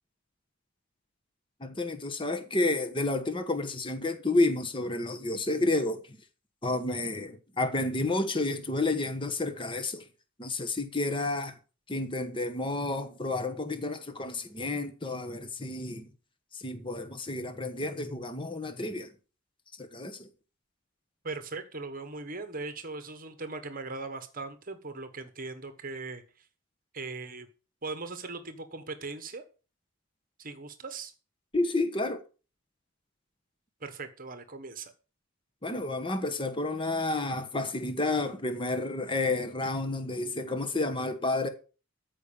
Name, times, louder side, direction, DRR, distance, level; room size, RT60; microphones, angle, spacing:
voice 1, 1.6-6.0 6.6-10.0 10.4-11.5 11.9-16.1 16.5-19.1 19.8-20.3 31.5-32.2 35.6-41.5, left 2 dB, 25° left, 1.2 m, -30 dB
voice 2, 21.2-26.5 26.9-27.5 27.8-29.4 30.4-31.1 33.8-34.9, right 3 dB, 40° right, 1.2 m, -39 dB
14.0 x 5.5 x 7.0 m
head